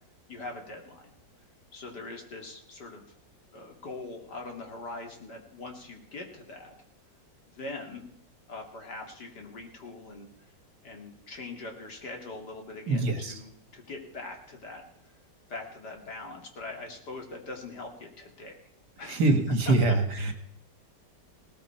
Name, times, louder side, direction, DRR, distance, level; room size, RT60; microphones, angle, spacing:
voice 1, 0.3-1.1 1.7-3.0 3.5-6.7 7.5-8.1 8.5-10.5 10.8-15.2 15.5-18.6 19.0-19.2 19.7-20.3, left 3 dB, 60° left, 2 dB, 3.1 m, -42 dB
voice 2, 12.9-13.4 19.1-20.3, right 2 dB, 60° right, 7 dB, 2.3 m, -24 dB
18.0 x 14.0 x 4.5 m, 0.74 s
omnidirectional pair, 2.0 m